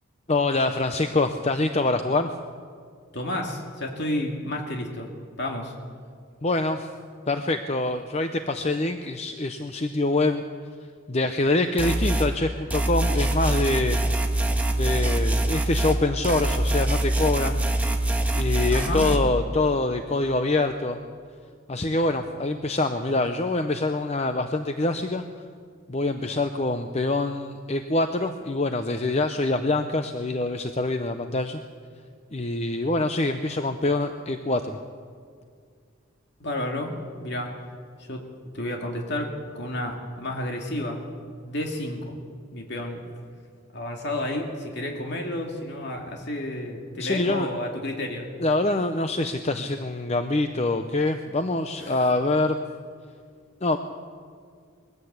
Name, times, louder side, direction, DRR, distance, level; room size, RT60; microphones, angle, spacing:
voice 1, 0.3-2.3 6.4-6.9 7.3-10.4 11.1-14.0 14.7-17.6 18.3-21.0 21.7-25.2 25.9-31.6 32.3-34.8 47.0-47.5 48.4-52.6 53.6-53.8, left 2 dB, 30° left, 7 dB, 0.7 m, -25 dB
voice 2, 3.1-5.1 5.4-5.7 18.7-19.0 36.4-37.5 38.0-38.2 38.5-41.0 41.4-42.2 42.5-43.0 43.7-48.3 51.8-52.0, left 1 dB, 55° left, 1 dB, 2.3 m, -31 dB
sound 1, 11.8-12.3 12.7-16.0 16.2-19.2, right 1 dB, 5° right, 1.4 m, -24 dB
21.5 x 16.0 x 8.1 m, 2.2 s
head